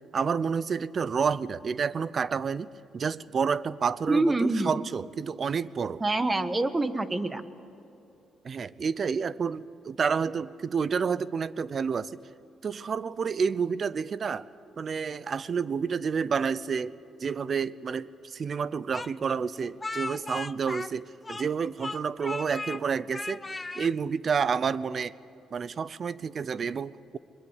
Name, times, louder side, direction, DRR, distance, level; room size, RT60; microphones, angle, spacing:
voice 1, 0.1-6.0 8.4-12.1 12.6-14.5 14.8-17.0 17.2-23.4 23.7-25.1 25.5-27.2, right 6 dB, 45° right, 19 dB, 0.7 m, -29 dB
voice 2, 4.1-4.8 6.0-7.4, right 2 dB, 20° right, 11 dB, 1.4 m, -26 dB
Speech, 18.9-21.5 21.8-22.8 23.1-23.9, left 3 dB, 20° left, 0.6 m, -37 dB
22.5 x 21.5 x 8.3 m, 2.9 s
cardioid pair, 90°, 0 cm